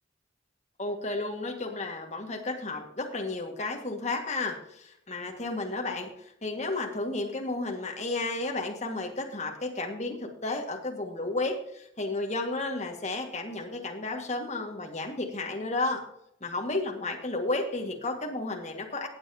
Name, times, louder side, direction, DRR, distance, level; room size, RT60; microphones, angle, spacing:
voice 1, 0.8-6.1 6.4-16.0 16.4-19.1, left 2 dB, 35° left, 2 dB, 1.8 m, -32 dB
18.5 x 7.5 x 2.8 m, 0.75 s
head